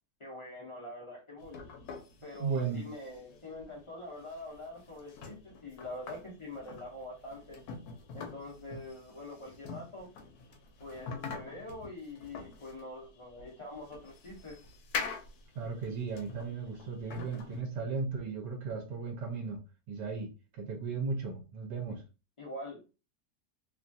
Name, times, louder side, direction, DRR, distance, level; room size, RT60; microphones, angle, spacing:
voice 1, 0.2-1.7 2.2-7.6 8.1-10.1 10.8-14.6 21.9-22.0 22.4-22.8, left 1 dB, 45° left, 0.4 m, -44 dB
sound 1, 1.4-17.6, left 5 dB, 70° left, 1.1 m, -45 dB
voice 2, 2.4-2.9 15.6-19.6 19.9-22.0, right 4 dB, 80° right, 1.3 m, -36 dB
3.0 x 2.3 x 2.5 m
omnidirectional pair, 1.8 m